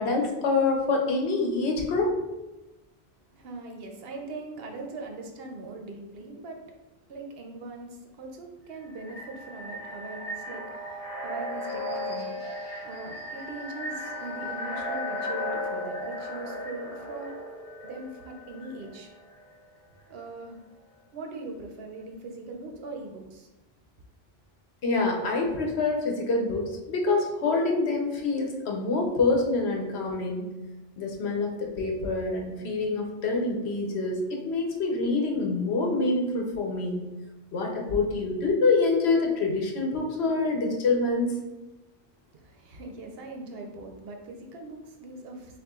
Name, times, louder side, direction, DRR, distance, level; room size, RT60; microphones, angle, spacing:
voice 1, 0.0-2.1 24.8-30.5 31.0-37.1 37.5-41.4, left 3 dB, 90° left, 1 dB, 1.1 m, -26 dB
voice 2, 3.3-6.7 7.1-17.4 17.8-19.1 20.1-20.6 21.1-23.5 42.3-45.6, right 2 dB, 70° right, 2 dB, 0.9 m, -41 dB
sound 1, 8.7-19.5, left 1 dB, 40° left, 1.0 m, -36 dB
6.5 x 2.6 x 2.4 m, 1.1 s
omnidirectional pair, 1.1 m